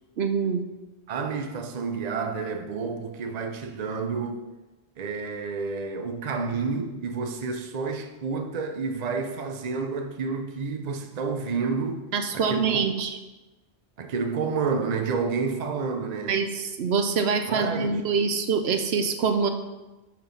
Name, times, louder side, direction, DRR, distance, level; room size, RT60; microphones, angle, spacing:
voice 1, 0.2-0.6 12.1-13.2 16.3-19.5, right 5 dB, 75° right, 0.9 m, -25 dB
voice 2, 1.1-4.4 5.0-12.1 12.3-12.8 14.0-16.4 17.5-18.0, right 4 dB, 45° right, 0.7 m, -29 dB
6.5 x 6.2 x 5.5 m
omnidirectional pair, 1.1 m